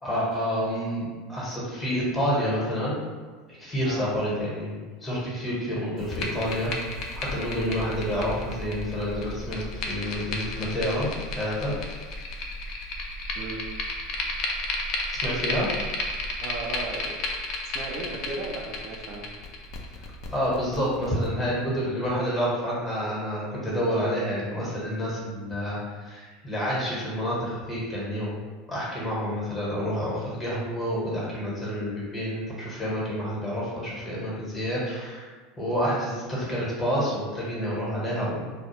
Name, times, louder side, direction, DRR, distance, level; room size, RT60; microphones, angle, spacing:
voice 1, 0.0-3.0 3.5-6.7 7.2-11.7 15.2-15.7 20.3-28.4 28.7-35.3 35.6-38.5, equal, 20° left, -7 dB, 1.0 m, -29 dB
sound 1, 6.0-21.3, left 2 dB, 55° left, 0.4 m, -33 dB
voice 2, 16.4-17.2 17.6-19.3, right 3 dB, 55° right, 0 dB, 0.5 m, -36 dB
2.3 x 2.0 x 2.9 m, 1.4 s
hypercardioid pair, 95°, 0 cm